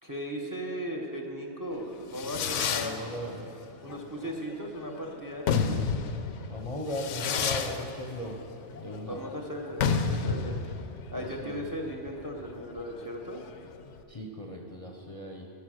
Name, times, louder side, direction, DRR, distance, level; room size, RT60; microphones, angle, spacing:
voice 1, 0.0-3.1 3.8-6.0 9.1-10.6 11.1-13.4, equal, 20° right, 1 dB, 0.9 m, -37 dB
Fireworks, 1.8-14.0, left 5 dB, 85° left, 1.0 m, -32 dB
voice 2, 2.7-3.4 6.5-8.4 8.7-9.2 11.1-11.6 14.1-15.5, left 1 dB, 35° left, 0 dB, 0.8 m, -37 dB
13.0 x 5.5 x 6.4 m, 3.0 s
omnidirectional pair, 1.2 m